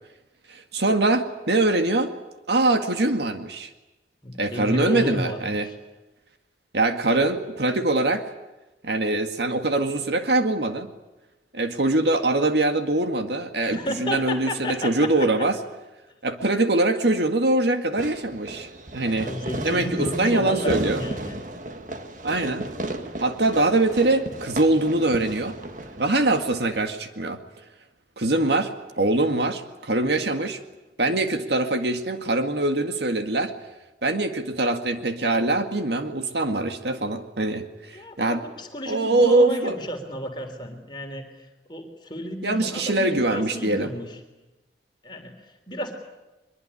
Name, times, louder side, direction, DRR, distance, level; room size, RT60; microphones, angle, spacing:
voice 1, 0.5-2.1 2.5-3.7 4.4-5.7 6.7-8.3 8.8-10.9 11.5-15.6 16.2-19.3 19.6-21.0 22.2-22.7 23.2-25.6 26.0-27.4 28.2-30.6 31.0-33.5 34.0-38.4 38.9-39.8 42.4-43.9, right 2 dB, 70° right, 7 dB, 2.0 m, -23 dB
voice 2, 4.2-5.8 13.7-15.1 18.9-21.4 37.9-44.2 45.0-46.0, equal, 25° left, 4 dB, 3.5 m, -32 dB
Fireworks, 18.0-27.0, right 1 dB, 45° right, 1.8 m, -35 dB
23.5 x 23.0 x 9.9 m, 1.1 s
head